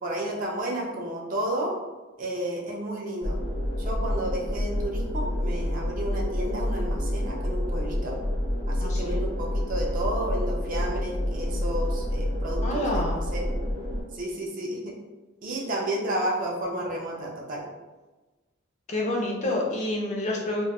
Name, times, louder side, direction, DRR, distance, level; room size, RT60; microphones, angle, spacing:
voice 1, 0.0-1.7 2.2-3.4 3.8-8.2 8.7-13.6 14.1-15.0 15.4-17.7, right 1 dB, 40° right, -1 dB, 0.4 m, -31 dB
sound 1, 3.2-14.0, left 1 dB, 80° left, 0.8 m, -28 dB
voice 2, 8.8-9.2 12.6-13.2 18.9-20.6, left 1 dB, 35° left, -2 dB, 0.4 m, -28 dB
2.2 x 2.1 x 2.8 m, 1.2 s
head